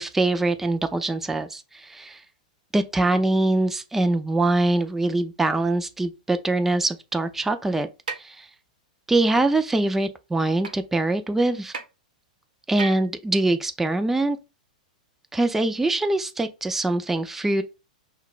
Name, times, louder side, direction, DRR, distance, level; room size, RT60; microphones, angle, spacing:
voice 1, 0.0-2.2 2.7-7.9 8.2-8.5 9.1-11.7 12.7-14.4 15.3-17.6, right 2 dB, 5° right, 0.4 m, -23 dB
sound 1, 8.1-8.2 9.4-9.5 10.6-10.7 11.7-11.8 12.8-13.1, right 5 dB, 85° right, 0.8 m, -32 dB
5.5 x 2.3 x 2.3 m
hypercardioid pair, 115°, 4 cm